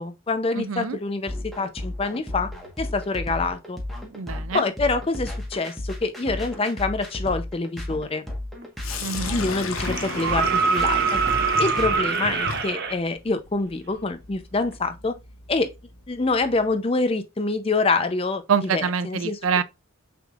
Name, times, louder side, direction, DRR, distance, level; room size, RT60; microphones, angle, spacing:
voice 1, 0.0-2.5 2.8-3.8 4.5-8.3 9.3-11.2 11.6-15.2 15.5-15.7 16.1-18.4 18.7-19.4, left 3 dB, 25° left, 0.5 m, -26 dB
voice 2, 0.5-1.0 4.1-4.6 9.0-9.4 18.5-19.6, right 6 dB, 80° right, 0.5 m, -25 dB
sound 1, 1.3-12.0, left 1 dB, ahead, 1.2 m, -33 dB
sound 2, 8.6-8.7 9.7-12.9 14.7-14.8, right 5 dB, 50° right, 0.8 m, -24 dB
Sink (filling or washing), 8.8-16.7, left 4 dB, 75° left, 0.8 m, -36 dB
6.2 x 3.5 x 2.3 m
head